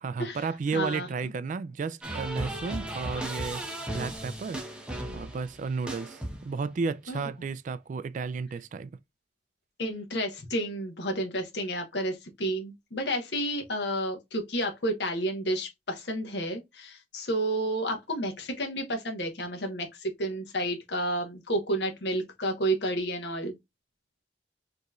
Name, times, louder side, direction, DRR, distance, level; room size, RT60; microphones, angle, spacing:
voice 1, 0.0-3.6 3.9-4.6 5.1-8.9, right 5 dB, 45° right, 0.3 m, -33 dB
voice 2, 0.7-1.1 7.1-7.2 9.8-23.5, right 1 dB, 70° left, 1.1 m, -31 dB
sound 1, 2.0-6.7, right 1 dB, 5° right, 1.0 m, -36 dB
5.1 x 3.0 x 2.3 m
head